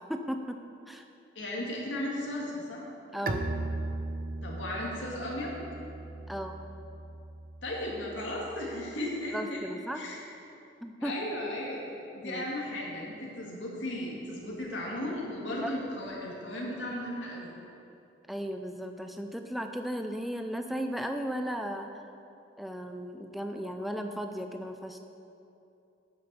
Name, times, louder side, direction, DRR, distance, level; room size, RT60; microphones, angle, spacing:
voice 1, 0.1-1.1 3.1-3.5 6.3-6.6 9.3-10.0 10.8-11.1 12.2-12.5 15.6-15.7 18.3-22.1 22.6-25.0, equal, ahead, 5 dB, 0.5 m, -36 dB
voice 2, 1.4-2.9 4.4-5.6 7.6-10.2 11.0-11.8 12.1-17.5, left 1 dB, 80° left, -3 dB, 2.1 m, -35 dB
Bowed string instrument, 3.3-8.8, right 2 dB, 50° right, 0.6 m, -38 dB
8.9 x 7.0 x 6.9 m, 2.8 s
head